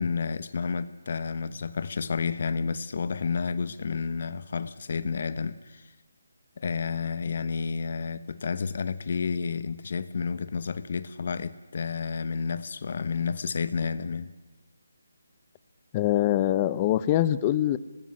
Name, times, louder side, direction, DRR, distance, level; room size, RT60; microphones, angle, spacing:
voice 1, 0.0-5.9 6.6-14.3, left 5 dB, 45° left, 15 dB, 1.1 m, -30 dB
voice 2, 15.9-17.8, left 13 dB, 20° left, 15 dB, 0.8 m, -23 dB
24.5 x 19.5 x 9.9 m, 1.1 s
hypercardioid pair, 170°, 0 cm